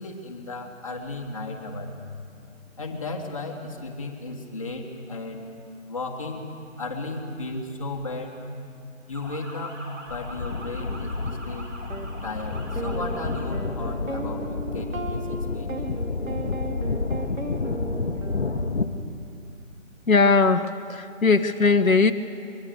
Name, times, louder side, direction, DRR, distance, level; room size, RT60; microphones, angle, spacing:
voice 1, 0.0-2.0 2.8-5.4 5.9-6.4 6.8-8.4 9.1-9.8 10.1-11.7 12.2-15.8, left 2 dB, 25° left, 0 dB, 1.6 m, -35 dB
Motor vehicle (road) / Siren, 9.1-13.5, right 1 dB, 65° right, 6.0 m, -42 dB
sound 1, 10.1-18.9, left 3 dB, 50° left, 1.3 m, -30 dB
sound 2, 11.9-12.1 12.8-19.1, right 3 dB, 80° right, 2.2 m, -36 dB
voice 2, 20.1-22.1, left 4 dB, 90° left, 8 dB, 1.2 m, -19 dB
23.5 x 22.0 x 6.7 m, 2.4 s
figure-of-eight pair, 175°, 40 cm